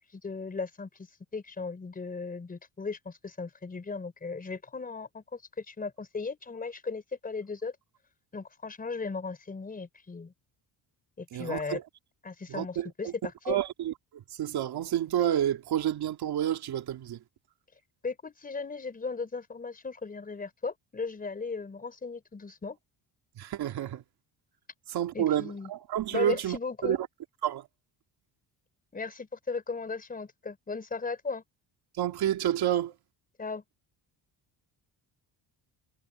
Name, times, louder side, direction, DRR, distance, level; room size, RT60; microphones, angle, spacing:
voice 1, 0.1-1.1 1.3-7.8 8.3-10.3 11.2-11.8 12.2-13.1 13.5-13.6 18.0-22.8 25.1-25.7 26.1-27.0 28.9-31.4 33.4-33.6, left 4 dB, 20° left, 4.3 m, -36 dB
voice 2, 11.3-11.8 12.5-13.1 13.5-17.2 23.4-24.0 24.9-26.6 26.8-27.1 27.4-27.7 32.0-32.9, right 11 dB, 60° right, 2.8 m, -29 dB
cardioid pair, 165°, 43 cm